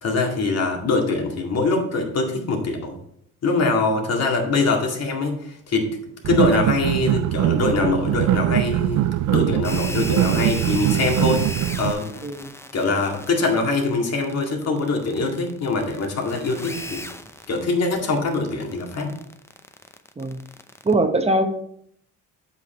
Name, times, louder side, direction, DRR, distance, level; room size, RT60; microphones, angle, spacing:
voice 1, 0.0-3.0 3.4-5.8 6.2-11.5 11.8-12.1 12.7-17.0 17.5-19.2, left 3 dB, 55° left, 2 dB, 2.2 m, -23 dB
sound 1, 6.2-11.9, right 13 dB, 75° right, 0.5 m, -22 dB
sound 2, 9.6-20.9, left 1 dB, 10° left, 0.7 m, -37 dB
voice 2, 20.8-21.5, right 2 dB, 20° right, 6 dB, 0.9 m, -21 dB
8.1 x 5.8 x 4.4 m, 0.69 s
cardioid pair, 90°, 30 cm